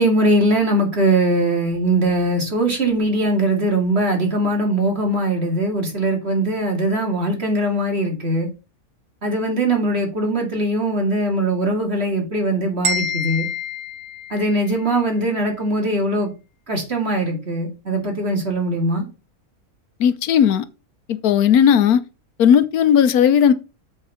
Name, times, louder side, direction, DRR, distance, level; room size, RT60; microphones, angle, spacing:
voice 1, 0.0-8.5 9.2-13.5 14.3-16.3 16.7-19.0, right 1 dB, 45° right, 2.6 m, -21 dB
sound 1, 12.8-14.9, left 2 dB, 75° right, 2.3 m, -27 dB
voice 2, 20.0-20.6 21.1-22.0 22.4-23.5, left 8 dB, 80° left, 1.2 m, -15 dB
7.8 x 4.6 x 5.7 m
omnidirectional pair, 1.6 m